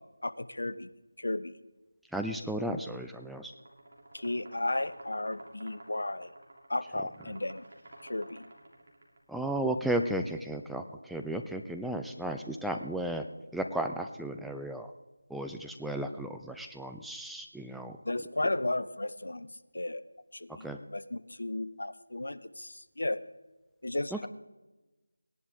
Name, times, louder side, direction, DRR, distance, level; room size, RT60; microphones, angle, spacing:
voice 1, 0.2-0.9 1.2-1.6 4.1-6.3 6.7-7.6 8.0-8.4 18.0-20.0 20.3-23.2 23.8-24.3, left 2 dB, 70° left, 14 dB, 0.7 m, -34 dB
voice 2, 2.1-3.5 9.3-13.3 13.5-14.9 15.3-18.0 20.6-20.8 24.1-24.3, right 1 dB, ahead, 4 dB, 0.3 m, -34 dB
sound 1, 3.5-9.2, right 1 dB, 50° right, 2.9 m, -51 dB
18.0 x 11.0 x 3.6 m, 1.1 s
figure-of-eight pair, 165°, 0 cm